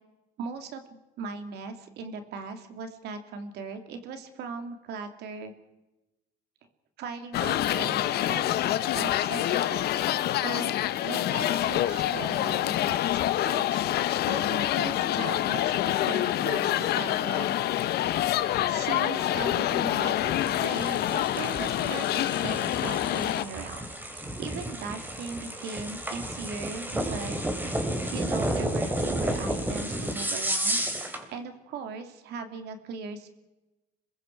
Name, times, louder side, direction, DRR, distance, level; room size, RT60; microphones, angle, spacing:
voice 1, 0.4-5.5 7.0-10.0 10.4-10.7 11.0-17.5 18.7-23.9 24.4-27.7 28.1-30.8 31.3-33.3, right 5 dB, 75° right, 7 dB, 2.7 m, -39 dB
sound 1, 7.3-23.4, left 13 dB, 70° left, 1.0 m, -26 dB
sound 2, 20.3-31.2, right 1 dB, 10° right, 3.5 m, -32 dB
26.5 x 22.0 x 4.7 m, 1.0 s
cardioid pair, 110°, 17 cm